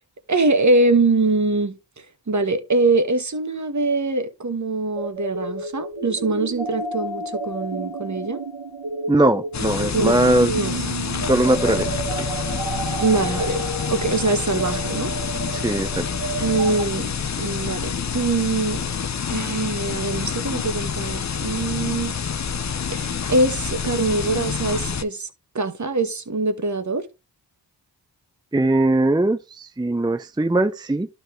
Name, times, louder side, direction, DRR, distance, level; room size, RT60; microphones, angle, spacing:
voice 1, 0.3-1.8 2.3-8.4 9.9-10.2 10.5-10.7 13.0-13.6 13.9-15.1 16.4-18.8 19.3-22.1 22.9-25.3 25.5-27.1, right 2 dB, 40° right, 1.4 m, -23 dB
sound 1, 5.0-16.8, right 3 dB, 80° right, 1.6 m, -31 dB
voice 2, 9.1-10.5 11.3-11.9 12.2-12.3 15.5-16.0 28.5-31.1, right 2 dB, 10° right, 0.6 m, -20 dB
sound 2, 9.5-25.0, left 6 dB, 40° left, 0.7 m, -27 dB
11.5 x 4.4 x 3.2 m
cardioid pair, 55°, 43 cm